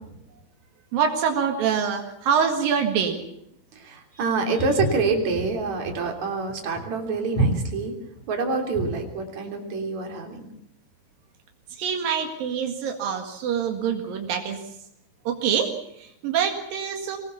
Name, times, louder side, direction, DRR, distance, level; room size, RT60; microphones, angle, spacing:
voice 1, 0.9-3.2 11.7-14.8 15.3-17.2, right 7 dB, 85° right, 4 dB, 3.7 m, -25 dB
voice 2, 3.7-8.0 8.3-10.5, right 4 dB, 55° right, 3 dB, 4.5 m, -27 dB
Walk footsteps, 4.6-9.1, right 2 dB, 65° left, 7.8 m, -28 dB
23.5 x 20.0 x 7.1 m, 0.76 s
omnidirectional pair, 3.9 m